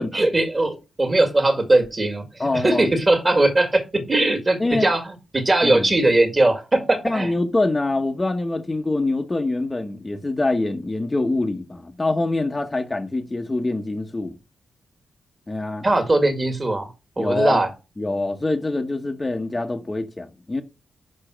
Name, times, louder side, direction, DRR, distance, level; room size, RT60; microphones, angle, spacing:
voice 1, 0.0-2.3 2.5-7.3 15.8-17.7, right 2 dB, 25° right, 1.8 m, -20 dB
voice 2, 2.4-2.9 4.6-4.9 5.6-5.9 7.0-14.4 15.5-15.9 17.2-17.6 18.0-20.6, left 2 dB, 15° left, 0.9 m, -24 dB
6.8 x 5.5 x 6.1 m
wide cardioid pair, 145°, 0 cm